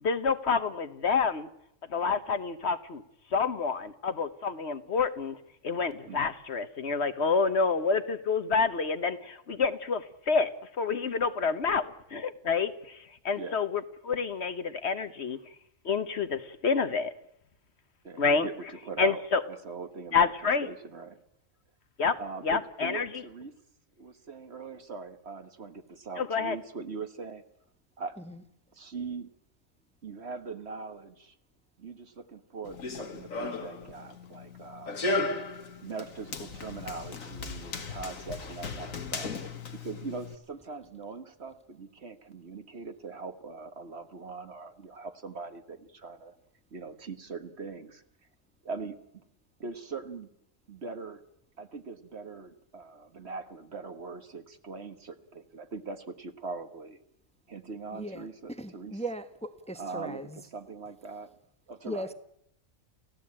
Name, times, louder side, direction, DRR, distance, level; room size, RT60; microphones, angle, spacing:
voice 1, 0.0-1.5 1.9-3.0 3.3-5.4 5.6-10.5 10.8-15.4 15.8-17.1 18.2-18.5 19.0-19.4 20.1-20.7 22.0-22.2 22.4-23.1 26.2-26.6, left 5 dB, 55° left, 11 dB, 1.3 m, -28 dB
voice 2, 18.0-19.2 19.5-20.3 20.6-21.2 22.2-23.5 24.0-27.4 28.0-28.2 28.7-29.3 30.0-31.4 31.8-35.0 35.8-39.4 39.7-46.4 46.7-48.0 48.6-49.2 49.6-50.3 50.7-51.2 51.6-57.0 57.5-59.0 59.7-61.3 61.7-62.1, right 4 dB, 55° right, 8 dB, 1.7 m, -41 dB
Run, 32.6-40.4, left 3 dB, 85° left, 2.1 m, -36 dB
voice 3, 57.9-58.2 58.6-60.3 61.9-62.1, right 1 dB, 5° left, 10 dB, 1.0 m, -37 dB
29.5 x 15.5 x 8.7 m, 0.79 s
omnidirectional pair, 1.4 m